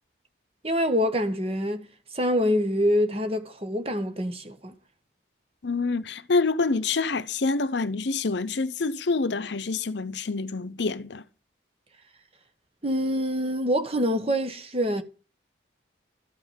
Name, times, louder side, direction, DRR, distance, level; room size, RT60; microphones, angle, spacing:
voice 1, 0.6-1.9 2.1-4.7 12.8-15.0, equal, 30° right, 1.2 m, -25 dB
voice 2, 5.6-11.2, left 3 dB, 75° left, 0.7 m, -27 dB
13.0 x 5.8 x 7.3 m
head